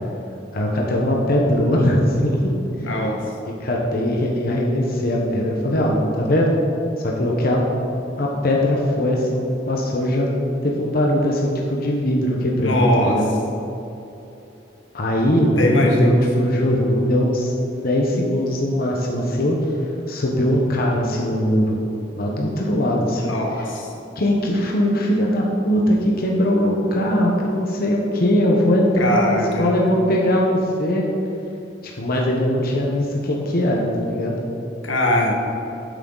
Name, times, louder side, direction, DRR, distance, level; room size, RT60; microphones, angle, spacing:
voice 1, 0.5-2.5 3.6-6.5 7.0-7.6 8.2-10.3 10.6-13.3 14.9-17.5 17.8-19.6 20.1-21.8 22.2-23.7 24.2-31.1 31.8-34.3, left 1 dB, 55° left, -2 dB, 1.1 m, -20 dB
voice 2, 2.8-3.2 12.6-13.2 15.6-16.1 23.2-23.9 29.0-29.8 34.8-35.3, left 1 dB, 90° left, 0 dB, 1.6 m, -21 dB
10.0 x 8.3 x 4.0 m, 2.9 s
head